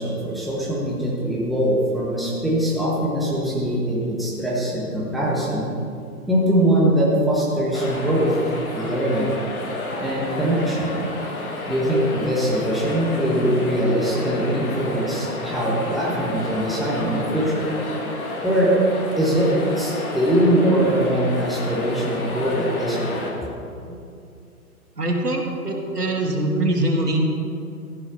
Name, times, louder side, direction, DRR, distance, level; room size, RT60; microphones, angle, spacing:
voice 1, 0.0-5.7 6.3-8.3 8.7-9.3 10.0-10.9 11.7-17.7 18.4-18.7 19.2-23.2 23.9-24.0, right 1 dB, ahead, -5 dB, 1.3 m, -22 dB
sound 1, 7.7-23.3, left 2 dB, 65° left, 2.5 m, -31 dB
voice 2, 25.0-27.2, right 1 dB, 85° right, 1 dB, 2.1 m, -23 dB
14.0 x 7.1 x 5.8 m, 2.5 s
figure-of-eight pair, 130°, 45 cm